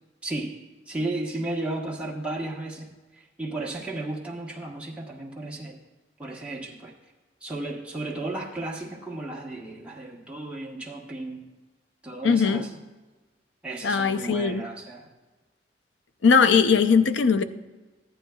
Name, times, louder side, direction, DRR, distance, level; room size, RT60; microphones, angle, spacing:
voice 1, 0.2-0.6 0.9-5.8 6.2-6.9 7.4-11.5 12.0-12.7 13.6-15.1, right 2 dB, 5° right, -3 dB, 1.2 m, -34 dB
voice 2, 12.2-12.7 13.8-14.6 16.2-17.4, left 5 dB, 85° left, 11 dB, 0.5 m, -20 dB
14.0 x 10.0 x 2.3 m, 1.2 s
head